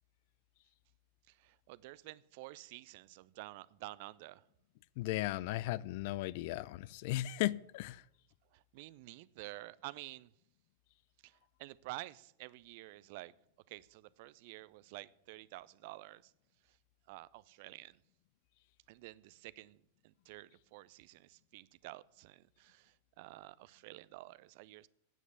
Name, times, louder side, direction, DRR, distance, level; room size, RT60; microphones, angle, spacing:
voice 1, 1.3-4.4 8.5-10.3 11.2-13.3 13.7-16.3 16.7-16.8 17.1-18.0 18.9-19.8 20.0-24.9, right 19 dB, 50° right, 0.4 m, -50 dB
voice 2, 5.0-8.0, left 16 dB, 50° left, 0.3 m, -36 dB
9.1 x 7.9 x 8.4 m
figure-of-eight pair, 90°, 0 cm